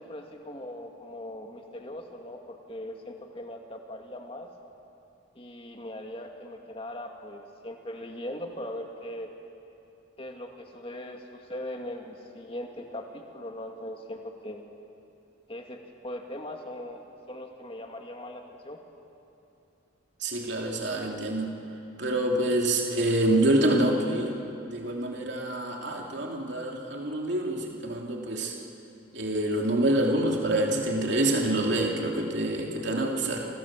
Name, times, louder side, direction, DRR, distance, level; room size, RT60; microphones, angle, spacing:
voice 1, 0.0-4.5 5.3-9.3 10.2-14.6 15.5-17.0 17.3-18.8, left 1 dB, 25° left, 2 dB, 2.4 m, -40 dB
voice 2, 20.2-21.5 22.0-24.3 24.6-28.5 29.1-33.5, right 1 dB, 60° right, 0 dB, 2.9 m, -26 dB
28.0 x 27.0 x 7.6 m, 2.8 s
head